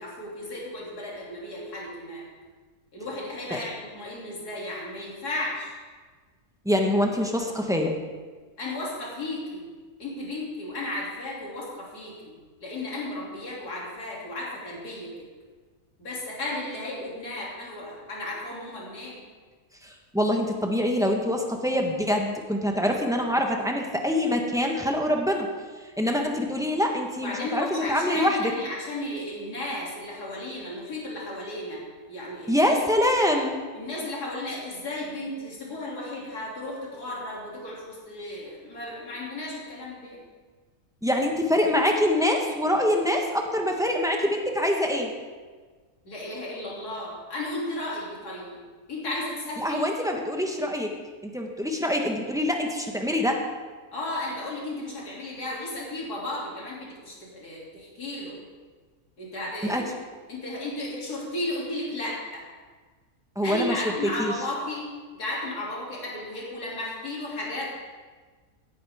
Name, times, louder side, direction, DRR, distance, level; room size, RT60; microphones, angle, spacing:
voice 1, 0.0-2.3 2.9-5.8 8.6-9.7 10.0-12.4 12.6-15.1 16.0-19.2 27.2-31.8 32.1-32.6 33.7-40.2 46.1-48.6 48.9-49.8 53.9-58.4 59.2-59.9 60.3-62.4 63.4-67.7, left 1 dB, 80° left, -5 dB, 3.5 m, -34 dB
voice 2, 6.6-7.9 19.8-25.5 26.0-28.5 32.5-33.6 41.0-45.1 49.6-50.9 51.2-53.4 59.6-59.8 63.3-64.3, left 1 dB, 5° right, 1 dB, 1.0 m, -25 dB
16.5 x 9.6 x 3.6 m, 1.4 s
omnidirectional pair, 1.7 m